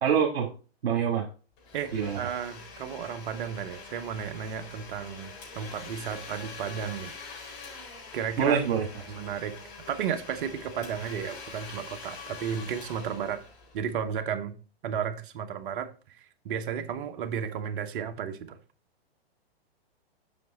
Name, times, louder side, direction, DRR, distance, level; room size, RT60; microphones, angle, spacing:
voice 1, 0.0-0.5 0.8-1.3 1.9-2.2 8.4-8.8, right 7 dB, 70° right, 1.6 m, -25 dB
Domestic sounds home sounds, 1.6-14.1, left 4 dB, 45° left, 4.1 m, -45 dB
voice 2, 1.7-7.2 8.1-8.6 9.1-9.5 9.9-13.4 13.7-14.5 14.8-15.9 16.2-18.6, right 8 dB, 55° right, 1.1 m, -33 dB
7.6 x 6.1 x 4.1 m
hypercardioid pair, 120°, 31 cm